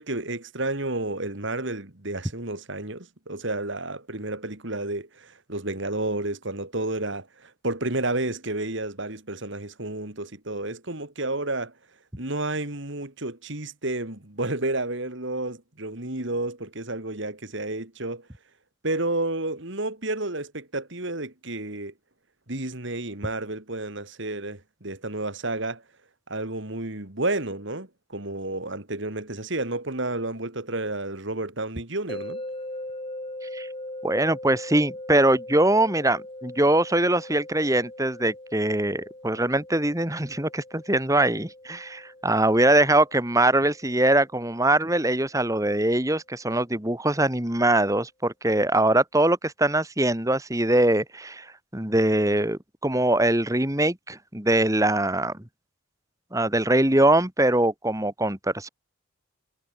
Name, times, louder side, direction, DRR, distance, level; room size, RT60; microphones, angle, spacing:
voice 1, 0.0-11.7 12.2-18.3 18.8-21.9 22.5-25.8 26.3-32.4, right 2 dB, 55° right, 2.7 m, -31 dB
sound 1, 32.1-45.2, left 1 dB, 25° left, 3.0 m, -41 dB
voice 2, 34.0-55.4 56.3-58.7, right 1 dB, 15° right, 2.0 m, -22 dB
head